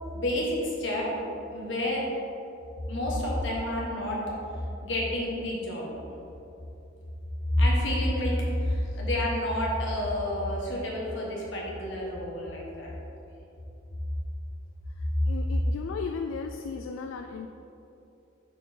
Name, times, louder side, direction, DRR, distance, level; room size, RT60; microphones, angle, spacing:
voice 1, 0.1-1.1 1.5-2.0 2.9-4.3 4.8-5.9 7.5-12.9, left 1 dB, 70° left, -4 dB, 1.4 m, -29 dB
voice 2, 15.0-17.5, left 5 dB, 90° left, 5 dB, 0.3 m, -36 dB
6.4 x 4.5 x 4.4 m, 2.9 s
head